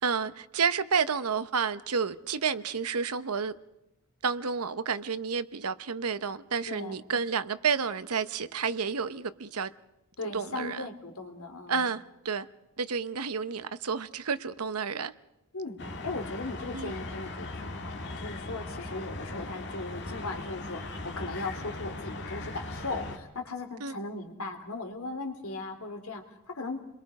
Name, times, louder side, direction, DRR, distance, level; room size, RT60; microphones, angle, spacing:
voice 1, 0.0-3.5 4.2-9.7 10.2-10.9 11.7-12.5 12.8-15.1 16.7-17.0 23.8-23.9, right 5 dB, 85° right, 0.9 m, -30 dB
voice 2, 6.6-7.0 10.2-11.9 15.5-26.8, left 3 dB, 75° left, 2.6 m, -38 dB
sound 1, 15.8-23.2, left 2 dB, 50° left, 1.9 m, -39 dB
29.5 x 22.0 x 4.9 m
head